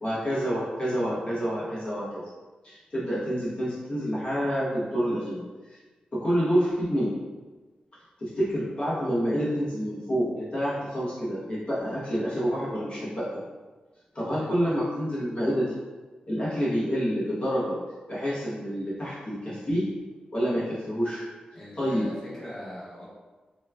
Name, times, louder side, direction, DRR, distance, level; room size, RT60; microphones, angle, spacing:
voice 1, 0.0-2.2 2.6-5.7 6.1-7.1 8.2-13.4 14.1-15.8 16.3-17.7 18.1-19.9 20.3-21.3 21.8-22.0, equal, 40° left, -10 dB, 0.9 m, -28 dB
voice 2, 21.5-23.0, equal, 15° left, -10 dB, 1.0 m, -41 dB
3.0 x 2.2 x 3.3 m, 1.3 s
wide cardioid pair, 160°, 3 cm